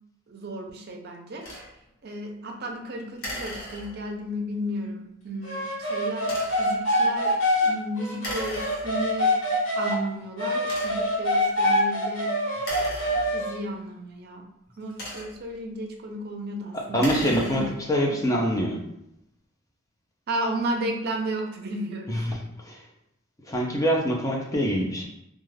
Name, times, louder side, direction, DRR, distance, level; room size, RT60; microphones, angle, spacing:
voice 1, 0.3-1.5 2.0-7.4 7.6-9.4 9.8-12.4 13.1-14.5 14.8-17.6 18.1-18.4 20.3-22.3, right 1 dB, 50° right, 2 dB, 0.5 m, -33 dB
sound 1, 1.4-1.7 3.2-4.2 6.2-6.7 8.2-9.2 9.9-10.0 10.6-11.2 12.6-13.7 14.7-15.6 16.8-17.9, left 1 dB, 50° left, 0.7 m, -37 dB
sound 2, 5.4-10.0 10.4-13.6, left 1 dB, 75° left, 1.2 m, -25 dB
voice 2, 16.9-18.8 22.1-22.4 22.6-22.8 23.5-25.1, equal, 15° left, -1 dB, 0.5 m, -25 dB
2.4 x 2.3 x 3.2 m, 0.79 s
head